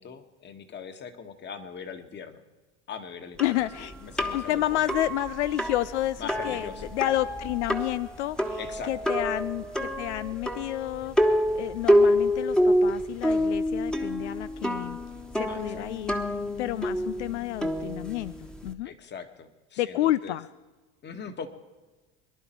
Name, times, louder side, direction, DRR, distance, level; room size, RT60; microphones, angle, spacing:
voice 1, 0.0-2.4 2.9-5.0 6.2-6.9 8.6-8.9 15.5-15.8 18.8-20.4 21.0-21.5, left 6 dB, 30° left, 8 dB, 1.7 m, -41 dB
voice 2, 3.4-3.9 4.3-8.6 8.9-15.0 15.4-16.2 16.6-18.9 19.8-20.5, left 14 dB, 80° left, 16 dB, 0.5 m, -30 dB
sound 1, 3.4-18.7, equal, ahead, 1.3 m, -27 dB
23.0 x 11.0 x 4.5 m, 1.3 s
hypercardioid pair, 95°, 34 cm